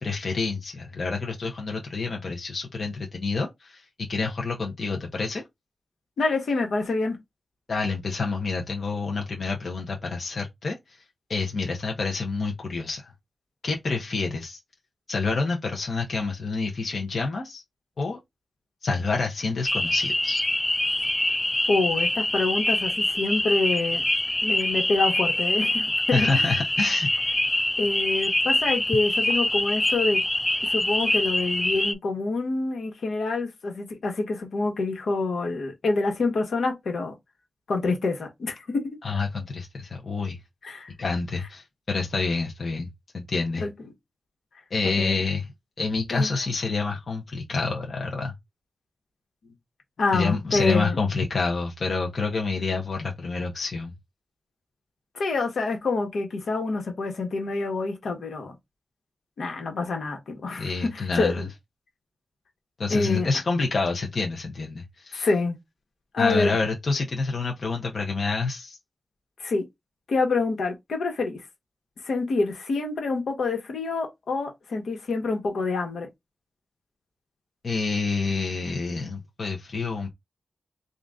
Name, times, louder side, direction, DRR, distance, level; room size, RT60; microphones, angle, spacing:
voice 1, 0.0-5.4 7.7-10.8 11.3-13.1 13.6-14.6 15.1-17.6 18.0-18.2 18.8-20.4 26.1-27.1 39.0-40.4 41.0-42.9 43.1-43.7 44.7-45.5 45.8-48.3 50.1-53.9 60.6-61.4 62.8-65.3 66.2-68.8 77.6-80.1, left 4 dB, 50° left, 0.8 m, -28 dB
voice 2, 6.2-7.2 21.7-24.0 24.4-26.6 27.8-30.2 30.6-37.1 37.7-39.0 40.6-40.9 43.6-43.7 44.8-45.2 46.1-46.3 50.0-51.0 55.1-58.5 59.4-61.5 62.9-63.3 65.1-65.6 66.1-66.5 69.4-69.6 70.1-71.4 72.0-76.1, left 3 dB, 80° left, 1.3 m, -26 dB
sound 1, 19.7-31.9, left 1 dB, 15° left, 0.3 m, -25 dB
3.8 x 2.5 x 3.6 m
wide cardioid pair, 115°, 0 cm